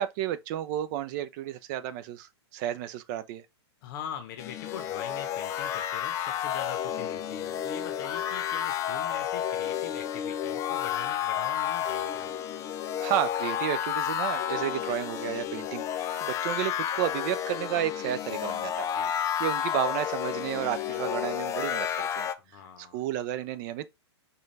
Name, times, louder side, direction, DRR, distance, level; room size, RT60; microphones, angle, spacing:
voice 1, 0.0-3.4 13.0-22.3 22.8-23.9, right 12 dB, 45° right, 0.5 m, -32 dB
voice 2, 3.8-12.3 18.9-19.1 22.4-23.0, left 9 dB, 50° left, 0.7 m, -43 dB
sound 1, 4.4-22.3, left 10 dB, 20° left, 0.3 m, -31 dB
5.2 x 2.3 x 3.2 m
hypercardioid pair, 125°, 14 cm